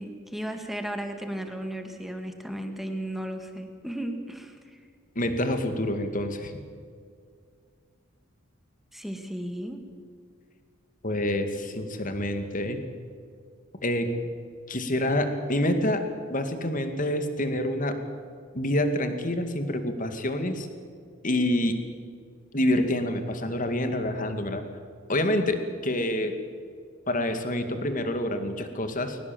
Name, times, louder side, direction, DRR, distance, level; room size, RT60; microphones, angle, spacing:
voice 1, 0.0-4.8 8.9-9.8, right 1 dB, ahead, 5 dB, 2.2 m, -35 dB
voice 2, 5.2-6.5 11.0-12.8 13.8-14.1 14.7-16.0 16.3-18.0 18.5-20.7 21.2-21.8 22.5-24.6 25.1-26.3 27.1-29.2, left 1 dB, 40° left, 7 dB, 2.3 m, -27 dB
22.0 x 19.0 x 7.8 m, 2.2 s
head